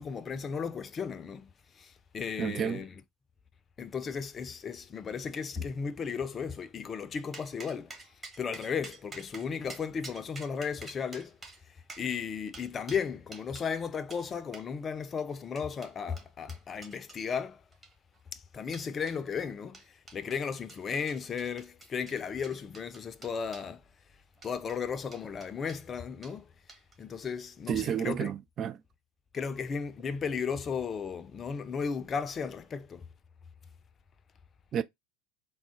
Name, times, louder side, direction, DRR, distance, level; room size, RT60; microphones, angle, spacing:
voice 1, 0.0-1.5 1.8-2.9 3.8-7.9 8.4-11.3 12.0-17.6 18.3-19.8 20.1-23.8 24.4-26.5 27.0-28.3 29.3-33.0, left 6 dB, 30° left, 0.5 m, -35 dB
voice 2, 2.4-2.9 27.7-28.8 34.7-34.8, right 8 dB, 40° right, 0.3 m, -31 dB
sound 1, 7.3-13.7 14.1-14.3 14.5-14.7 15.2-17.2 17.7-18.2 18.7-19.2 19.7-20.4 20.7-23.7 24.4-24.8 25.1-25.8 26.2-26.4 26.7-27.0, right 3 dB, 25° right, 1.3 m, -49 dB
3.6 x 2.1 x 3.6 m
hypercardioid pair, 75°, 0 cm